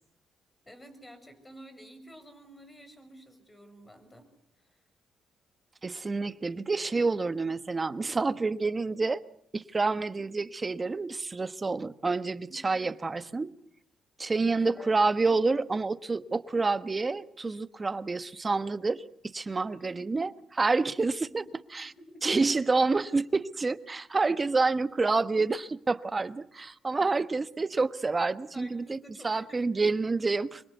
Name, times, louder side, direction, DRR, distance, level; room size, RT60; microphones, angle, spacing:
voice 1, 0.6-4.3 4.6-4.8 12.5-12.8 14.6-15.0 19.8-20.1 21.9-22.2 28.5-29.6, equal, 15° left, 6.5 m, -51 dB
voice 2, 5.8-9.2 9.5-13.5 14.2-19.0 19.3-21.4 21.7-21.9 22.2-29.0 29.2-30.6, right 3 dB, 25° right, 1.2 m, -28 dB
25.5 x 23.0 x 8.2 m
cardioid pair, 90°, 0 cm